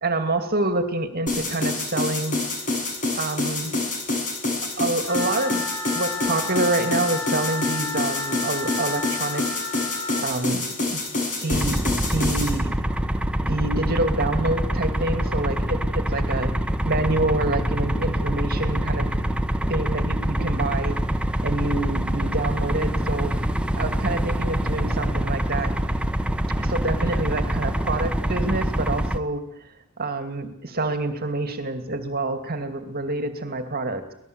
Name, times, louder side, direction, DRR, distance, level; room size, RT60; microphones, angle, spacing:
voice 1, 0.0-2.4 3.2-3.7 4.6-9.6 10.2-11.0 11.4-12.7 13.4-16.5 16.8-19.1 19.7-21.0 21.4-23.4 23.7-25.7 26.6-29.4 30.0-34.1, right 2 dB, 45° right, 8 dB, 2.4 m, -27 dB
sound 1, 1.3-12.5, left 2 dB, 35° left, 6.9 m, -27 dB
Wind instrument woodwind instrument, 5.0-10.3, left 4 dB, 75° left, 5.0 m, -32 dB
sound 2, 11.5-29.2, equal, 5° right, 1.0 m, -25 dB
26.0 x 19.0 x 8.0 m, 0.77 s
head